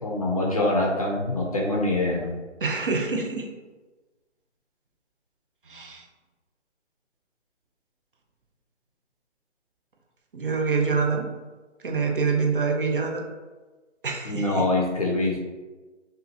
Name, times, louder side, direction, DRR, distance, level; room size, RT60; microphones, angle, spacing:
voice 1, 0.0-2.4 14.2-15.4, left 2 dB, 30° left, -1 dB, 0.6 m, -24 dB
voice 2, 2.6-3.5 5.7-6.0 10.3-11.3 11.8-13.2 14.0-14.5, right 4 dB, 50° right, 2 dB, 0.7 m, -25 dB
5.3 x 2.7 x 2.8 m, 1.2 s
hypercardioid pair, 165°, 36 cm